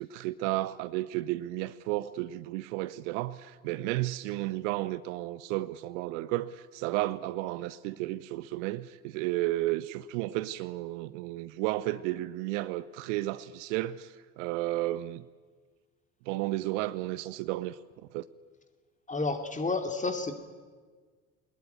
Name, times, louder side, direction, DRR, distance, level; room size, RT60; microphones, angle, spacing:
voice 1, 0.0-15.2 16.3-17.8 18.1-18.2, right 17 dB, 55° right, 0.8 m, -33 dB
voice 2, 19.1-20.3, left 3 dB, 15° left, 2.7 m, -30 dB
22.5 x 20.5 x 9.3 m
figure-of-eight pair, 65°, 44 cm